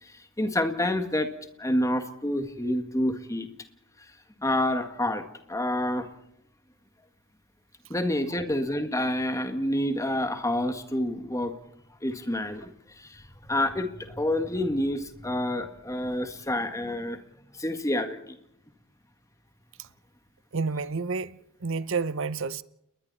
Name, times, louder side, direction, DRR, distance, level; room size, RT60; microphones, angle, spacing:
voice 1, 0.0-1.3 1.6-3.5 4.4-6.1 7.9-11.6 12.0-17.2 17.5-18.4, left 1 dB, 15° left, 1.8 m, -28 dB
voice 2, 20.5-22.6, right 4 dB, 60° right, 0.9 m, -30 dB
29.5 x 21.0 x 4.2 m
head